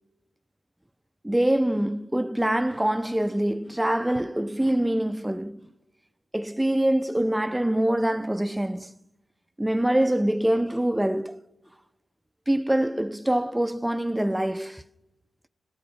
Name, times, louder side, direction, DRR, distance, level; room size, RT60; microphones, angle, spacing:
voice 1, 1.2-5.6 6.3-8.9 9.6-11.4 12.5-14.8, right 1 dB, 5° right, 0.6 m, -24 dB
28.5 x 16.0 x 6.3 m
cardioid pair, 75°, 0 cm